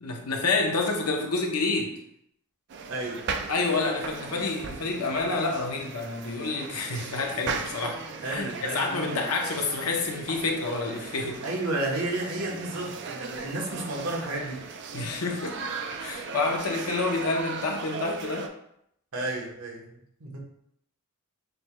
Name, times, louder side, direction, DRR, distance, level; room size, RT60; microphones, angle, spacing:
voice 1, 0.0-1.9 3.5-11.4 14.9-15.6 16.0-18.5, left 3 dB, 90° left, 2 dB, 0.8 m, -28 dB
sound 1, 2.7-18.5, right 5 dB, 55° right, 0.4 m, -37 dB
voice 2, 2.9-3.2 8.2-9.2 11.4-14.6 16.3-16.5 19.1-20.4, right 2 dB, 80° right, -1 dB, 1.1 m, -32 dB
6.4 x 2.2 x 3.1 m, 0.74 s
head